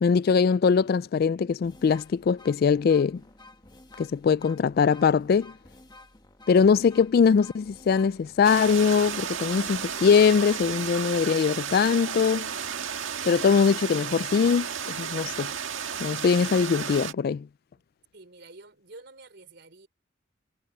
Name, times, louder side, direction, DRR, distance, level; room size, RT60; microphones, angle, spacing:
voice 1, 0.0-3.2 4.0-5.5 6.5-12.5 13.2-15.5 16.0-17.5, left 6 dB, 50° left, 0.3 m, -22 dB
sound 1, 1.5-10.6, left 2 dB, 20° left, 1.6 m, -51 dB
sound 2, 8.4-17.1, right 8 dB, 85° right, 1.8 m, -33 dB
voice 2, 18.1-19.9, right 2 dB, 60° right, 4.0 m, -48 dB
head